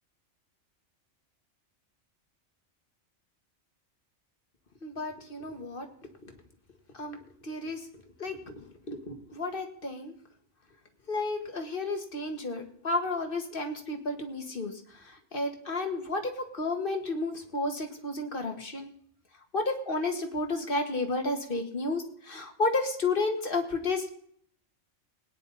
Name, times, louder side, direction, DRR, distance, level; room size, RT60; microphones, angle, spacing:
voice 1, 4.8-5.9 7.0-7.2 7.4-7.8 8.2-10.1 11.1-14.7 15.1-18.9 19.5-24.1, left 2 dB, 50° left, 4 dB, 1.9 m, -32 dB
19.5 x 9.8 x 4.1 m, 0.64 s
omnidirectional pair, 1.2 m